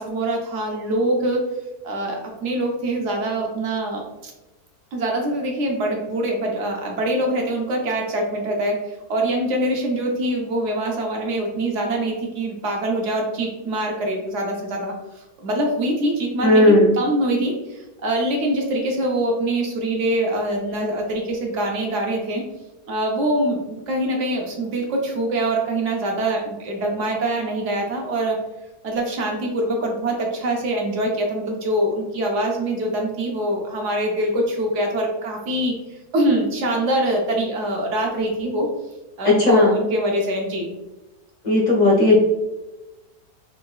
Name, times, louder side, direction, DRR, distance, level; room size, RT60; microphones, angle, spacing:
voice 1, 0.0-1.4 1.8-4.3 4.9-14.9 15.4-22.4 22.9-28.4 28.8-35.7 36.1-38.7 39.2-40.7, right 1 dB, 65° right, 1 dB, 0.8 m, -24 dB
voice 2, 16.4-16.9 39.2-39.8 41.4-42.2, left 1 dB, 55° left, -4 dB, 0.4 m, -15 dB
3.7 x 2.2 x 2.2 m, 1.0 s
omnidirectional pair, 1.7 m